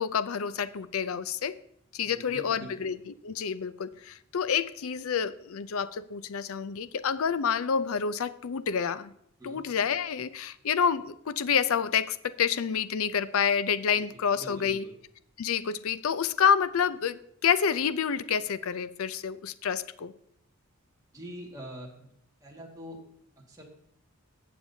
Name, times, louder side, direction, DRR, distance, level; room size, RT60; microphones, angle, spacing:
voice 1, 0.0-1.5 1.9-9.1 9.4-14.8 15.4-20.1, left 7 dB, 70° left, 15 dB, 0.4 m, -28 dB
voice 2, 2.0-2.8 9.4-9.6 13.9-14.9 21.1-22.1 22.4-23.0 23.5-23.6, right 1 dB, 15° right, -2 dB, 1.8 m, -44 dB
18.5 x 7.3 x 2.7 m, 0.74 s
head